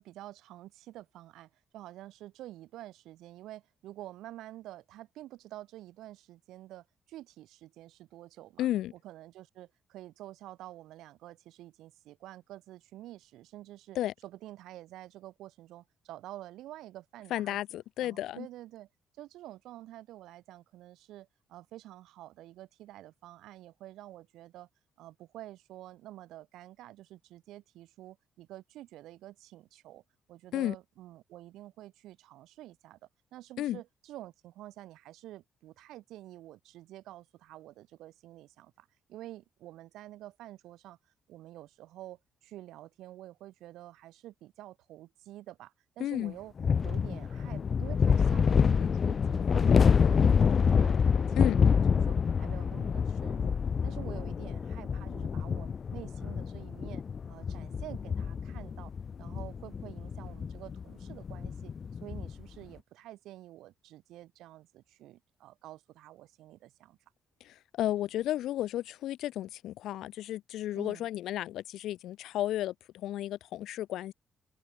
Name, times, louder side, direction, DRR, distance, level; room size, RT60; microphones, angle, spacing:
voice 1, 0.0-17.6 18.0-18.9 19.2-24.7 25.0-30.0 30.3-33.0 33.3-41.0 41.3-46.5 46.8-53.6 53.8-58.9 59.2-67.0 70.7-71.1, right 15 dB, 90° right, 7.1 m, -49 dB
voice 2, 8.6-8.9 13.9-14.1 17.3-18.5 30.5-30.7 33.6-33.8 46.0-46.3 51.3-51.6 67.4-74.1, left 13 dB, 80° left, 1.7 m, -33 dB
sound 1, 46.6-62.4, left 6 dB, 45° left, 1.3 m, -27 dB
cardioid pair, 90°, 0 cm